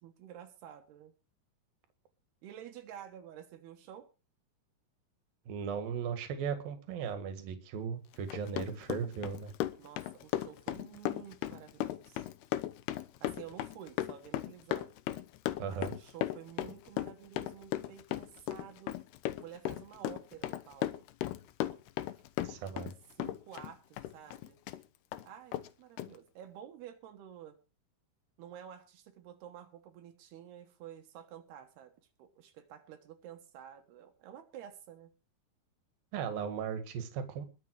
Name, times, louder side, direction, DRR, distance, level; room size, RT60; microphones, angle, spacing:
voice 1, 0.0-1.1 2.4-4.1 9.8-12.3 13.2-14.9 15.7-18.9 19.4-20.9 22.4-22.6 23.2-24.6 25.2-27.6 28.4-31.9 32.2-35.1 36.2-36.5, right 10 dB, 85° right, 6 dB, 3.4 m, -50 dB
voice 2, 5.5-9.5 15.6-15.9 22.4-22.9 36.1-37.5, right 7 dB, 70° right, 8 dB, 3.5 m, -37 dB
Run, 8.1-22.9 23.2-24.8 25.1-25.2 25.5-25.7 26.0-26.1, left 13 dB, 90° left, 2.9 m, -37 dB
21.5 x 7.5 x 4.7 m, 0.32 s
omnidirectional pair, 4.5 m